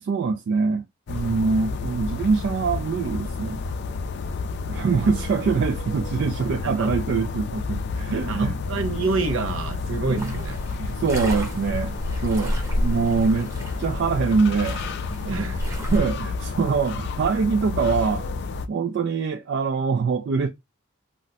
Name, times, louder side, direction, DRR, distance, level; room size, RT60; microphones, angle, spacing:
voice 1, 0.0-3.6 4.7-8.5 10.1-10.3 10.8-13.5 13.8-14.8 15.9-18.3 18.7-20.5, right 5 dB, 60° right, 0.3 m, -24 dB
sound 1, 1.1-18.7, left 4 dB, 55° left, 0.4 m, -30 dB
voice 2, 8.1-10.6 15.2-15.8, right 3 dB, 80° right, 0.7 m, -28 dB
sound 2, 10.2-16.0, equal, 15° right, 0.7 m, -31 dB
2.5 x 2.1 x 3.9 m
head